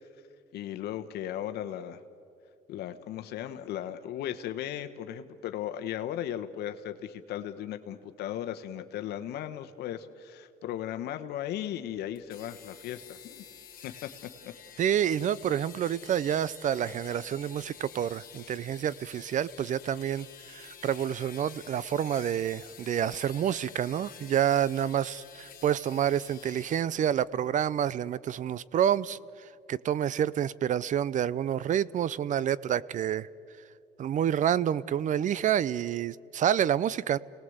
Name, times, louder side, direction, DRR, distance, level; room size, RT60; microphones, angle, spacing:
voice 1, 0.5-2.0 2.7-13.4 13.8-14.8, left 11 dB, 75° left, 8 dB, 1.1 m, -37 dB
sound 1, 12.2-26.9, left 8 dB, 60° left, 2.9 m, -49 dB
voice 2, 14.8-33.3 34.0-37.2, right 10 dB, 50° right, 21 dB, 0.6 m, -28 dB
29.5 x 19.0 x 7.9 m, 2.5 s
cardioid pair, 110°, 17 cm